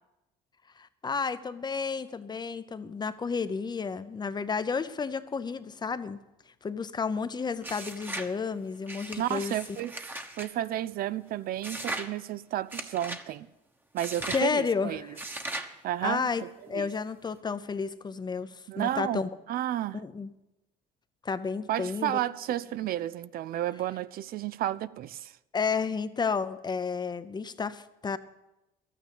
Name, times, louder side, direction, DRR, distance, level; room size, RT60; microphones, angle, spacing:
voice 1, 0.8-6.2 6.6-9.5 14.3-15.2 16.0-19.3 19.9-20.3 21.2-22.2 25.5-28.2, left 5 dB, 25° left, 0.6 m, -31 dB
sound 1, 7.6-8.3 8.9-10.5 11.6-12.1 12.7-13.2 14.0-14.5 15.2-15.7, right 1 dB, 10° right, 1.1 m, -38 dB
voice 2, 9.2-9.9 10.4-13.5 13.9-15.0 15.8-16.9 18.7-20.0 21.7-25.3, right 12 dB, 60° right, 0.4 m, -32 dB
12.5 x 9.3 x 7.0 m
cardioid pair, 110°, 17 cm